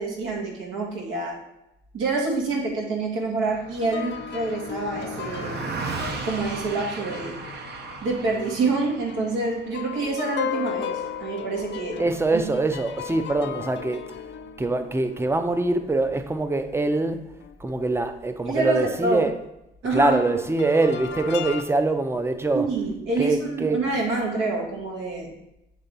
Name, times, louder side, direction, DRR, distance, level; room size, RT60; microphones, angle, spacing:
voice 1, 0.0-1.4 1.9-5.6 6.2-7.4 8.0-12.0 12.3-12.4 18.5-19.2 19.8-20.2 22.5-25.3, right 3 dB, 85° right, 1.8 m, -27 dB
Car passing by, 3.4-13.0, right 4 dB, 55° right, 0.9 m, -37 dB
sound 1, 3.8-8.8 9.1-16.8 17.4-17.5 20.1-21.6, left 8 dB, 60° left, 0.5 m, -36 dB
voice 2, 12.0-14.0 14.6-19.4 19.9-22.7 23.2-23.8, right 2 dB, 10° right, 0.6 m, -24 dB
8.1 x 3.4 x 4.1 m
cardioid pair, 90°, 20 cm